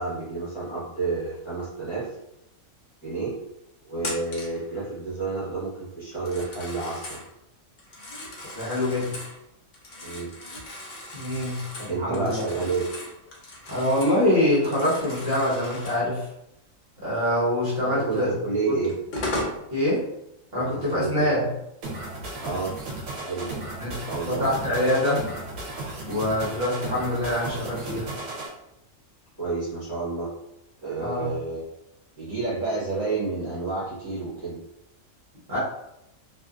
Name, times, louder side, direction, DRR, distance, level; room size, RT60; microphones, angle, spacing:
voice 1, 0.0-2.2 3.0-3.4 3.8-7.2 10.0-10.3 11.9-12.9 17.8-18.9 20.5-21.2 22.4-22.7 23.2-23.5 24.0-24.4 29.4-30.3 30.8-31.6 32.2-34.6, right 3 dB, 25° left, -11 dB, 0.9 m, -30 dB
Telephone, 4.0-4.6 6.1-7.3 7.8-9.4 9.7-14.2 14.5-16.1 18.2-18.3 18.8-19.6, left 1 dB, 50° left, 0.6 m, -37 dB
voice 2, 8.5-9.2 11.1-12.4 13.7-16.3 17.0-18.3 18.7-18.8 19.7-20.1 20.5-21.4 23.8-24.0 24.3-25.2 26.1-28.1 31.0-31.3 35.5-35.6, left 1 dB, 50° right, -8 dB, 1.1 m, -24 dB
sound 1, 21.8-28.5, right 2 dB, 75° right, 1.1 m, -35 dB
2.5 x 2.4 x 2.3 m, 0.83 s
omnidirectional pair, 1.4 m